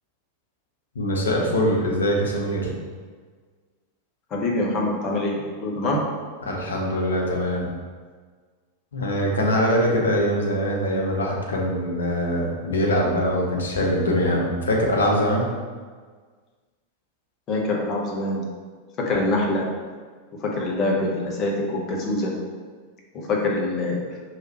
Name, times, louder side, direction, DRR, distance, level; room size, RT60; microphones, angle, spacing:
voice 1, 0.9-2.7 6.4-7.7 8.9-15.5, equal, 70° left, -1 dB, 0.8 m, -23 dB
voice 2, 4.3-6.0 17.5-18.4 19.0-19.6 20.4-22.3 23.3-24.0, left 2 dB, 30° left, -1 dB, 1.0 m, -24 dB
4.8 x 3.4 x 3.0 m, 1.5 s
figure-of-eight pair, 90°, 0 cm